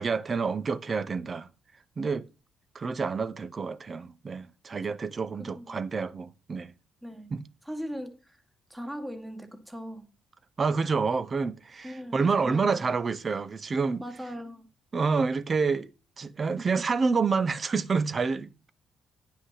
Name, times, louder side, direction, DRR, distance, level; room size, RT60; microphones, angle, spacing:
voice 1, 0.0-1.5 2.0-2.3 2.7-6.7 7.3-7.5 10.6-14.0 14.9-15.9 16.2-18.7, right 4 dB, 35° right, 0.7 m, -28 dB
voice 2, 5.3-5.8 7.0-8.4 8.7-10.1 11.8-12.9 14.0-14.7, equal, 10° right, 1.6 m, -40 dB
9.8 x 5.8 x 5.7 m
cardioid pair, 90°, 0 cm